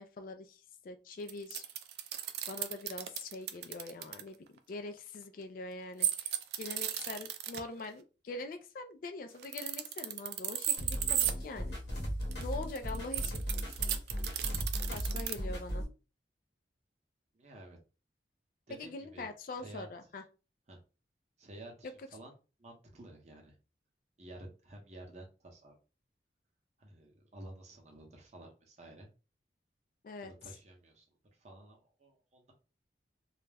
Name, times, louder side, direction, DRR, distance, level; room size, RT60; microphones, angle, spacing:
voice 1, 0.0-1.6 2.5-4.4 4.7-11.8 12.4-13.4 14.9-15.9 18.7-20.2 21.8-22.1 30.0-30.3, left 3 dB, 50° left, 7 dB, 0.3 m, -43 dB
sound 1, 1.3-4.2 6.0-7.6 9.3-11.3 12.2-15.3, right 11 dB, 65° right, 0.3 m, -34 dB
sound 2, 10.8-15.8, equal, 70° left, 0.9 m, -37 dB
voice 2, 17.3-17.8 18.7-19.3 19.6-19.9 20.7-20.8 21.4-22.3 22.6-23.6 24.2-25.7 26.8-29.1 30.2-31.1 31.4-32.5, right 1 dB, 40° right, 1 dB, 0.7 m, -51 dB
2.3 x 2.1 x 3.2 m, 0.33 s
head